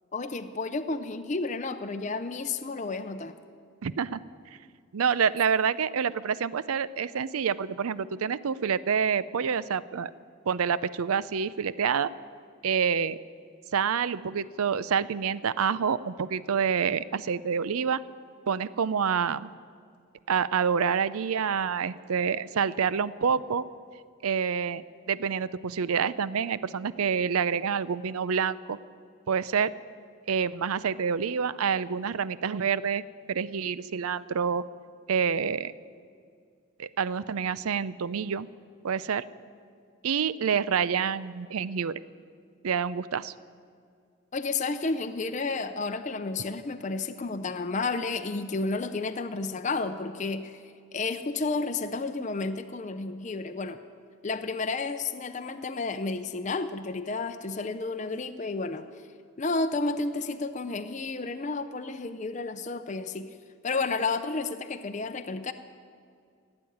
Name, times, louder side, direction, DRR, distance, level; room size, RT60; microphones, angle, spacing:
voice 1, 0.1-3.4 44.3-50.6 50.9-53.8 54.2-58.9 59.4-63.3 63.6-65.5, left 3 dB, 35° left, 8 dB, 0.5 m, -31 dB
voice 2, 3.8-4.2 4.9-10.1 10.5-12.1 12.6-13.2 13.7-18.0 18.5-19.5 20.3-23.6 24.2-24.8 25.1-28.8 29.3-29.7 30.3-33.0 33.3-34.6 35.1-35.7 36.8-38.5 38.8-39.2 40.0-42.0 42.6-43.3, right 6 dB, 85° right, 17 dB, 0.5 m, -27 dB
16.5 x 8.8 x 9.4 m, 2.2 s
head